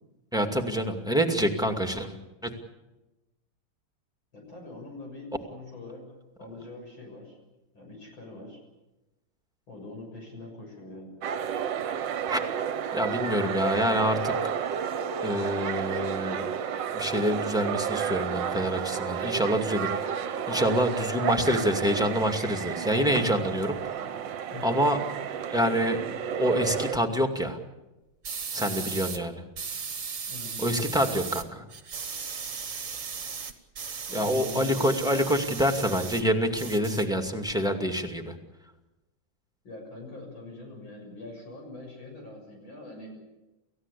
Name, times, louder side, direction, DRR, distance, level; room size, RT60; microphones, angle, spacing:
voice 1, 0.3-2.5 12.3-12.4 12.9-14.3 15.2-16.5 16.9-20.1 20.5-23.8 24.6-25.0 25.5-26.0 26.4-27.6 28.5-29.4 30.6-31.6 34.1-38.3, equal, ahead, 4 dB, 2.1 m, -26 dB
voice 2, 4.3-6.1 6.4-7.4 7.7-8.6 9.7-11.1 24.5-25.0 28.5-28.8 30.3-30.6 34.1-35.1 39.6-43.2, left 2 dB, 65° left, 1 dB, 7.7 m, -43 dB
sound 1, 11.2-27.0, right 8 dB, 65° right, 1.6 m, -31 dB
sound 2, 28.2-29.2 29.6-31.4 31.7-36.2 36.5-37.5, right 6 dB, 40° right, 1.7 m, -36 dB
29.0 x 16.0 x 8.5 m, 1.0 s
omnidirectional pair, 2.4 m